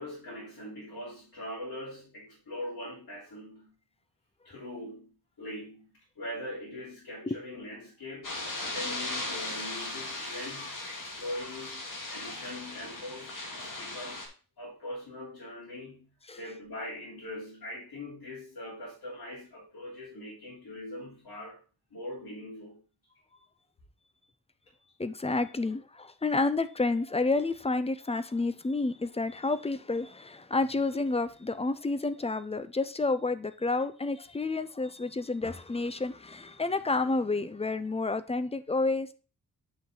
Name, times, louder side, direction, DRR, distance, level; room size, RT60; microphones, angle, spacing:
voice 1, 0.0-3.7 4.4-11.8 12.1-14.3 14.6-21.6 21.9-22.8, left 1 dB, 70° left, 3.5 m, -42 dB
sound 1, 8.2-14.3, left 2 dB, 55° left, 2.5 m, -38 dB
voice 2, 25.0-39.1, left 3 dB, 15° left, 0.5 m, -30 dB
8.4 x 5.9 x 3.8 m
wide cardioid pair, 125°, 38 cm